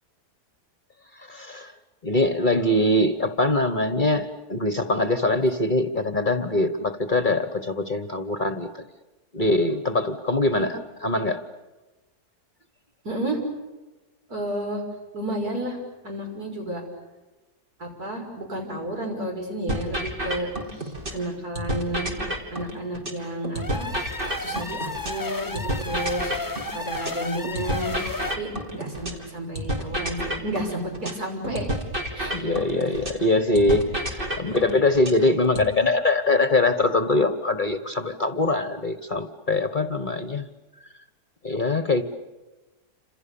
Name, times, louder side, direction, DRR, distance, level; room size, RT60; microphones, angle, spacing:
voice 1, 1.2-1.7 2.0-8.8 9.3-10.7 11.0-11.4 32.3-40.5 41.4-42.0, left 2 dB, 35° left, 10 dB, 1.3 m, -23 dB
voice 2, 13.0-13.4 14.3-14.8 15.1-15.8 16.0-16.8 17.8-23.9 24.4-28.0 28.4-31.7 32.1-32.5 32.8-33.0 34.4-34.8, right 1 dB, 70° right, 1 dB, 6.6 m, -32 dB
sound 1, 19.7-21.3 21.5-25.3 25.5-29.3 29.5-33.3 33.5-35.7, right 1 dB, 35° right, 3.5 m, -30 dB
sound 2, 23.5-28.4, left 2 dB, 15° left, 0.8 m, -33 dB
29.5 x 27.0 x 7.1 m, 1.1 s
omnidirectional pair, 1.7 m